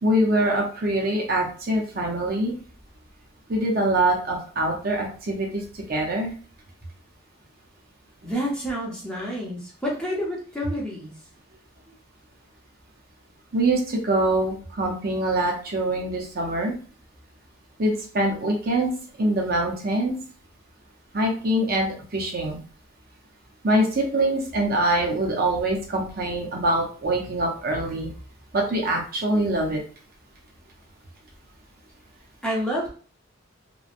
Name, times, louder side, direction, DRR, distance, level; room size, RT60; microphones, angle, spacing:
voice 1, 0.0-2.5 3.5-5.6 5.9-6.3 13.5-16.7 17.8-18.9 19.2-20.2 21.1-22.6 23.6-28.1 28.5-29.8, right 1 dB, 45° right, 0 dB, 0.6 m, -24 dB
voice 2, 8.2-11.1 32.4-32.9, equal, 5° left, -4 dB, 0.7 m, -28 dB
3.1 x 2.0 x 2.4 m, 0.40 s
head